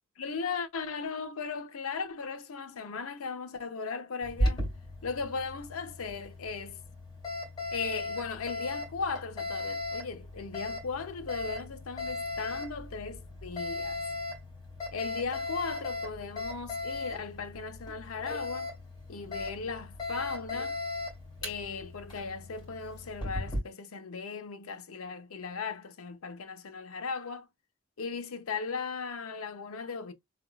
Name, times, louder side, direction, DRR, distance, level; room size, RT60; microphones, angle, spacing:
voice 1, 0.2-4.7 5.0-6.8 7.7-14.0 14.9-18.7 19.1-20.8 21.4-27.5 28.0-30.1, left 5 dB, 85° left, 0.6 m, -37 dB
Alarm, 4.2-23.6, left 2 dB, 20° left, 2.6 m, -37 dB
3.8 x 3.4 x 2.3 m
head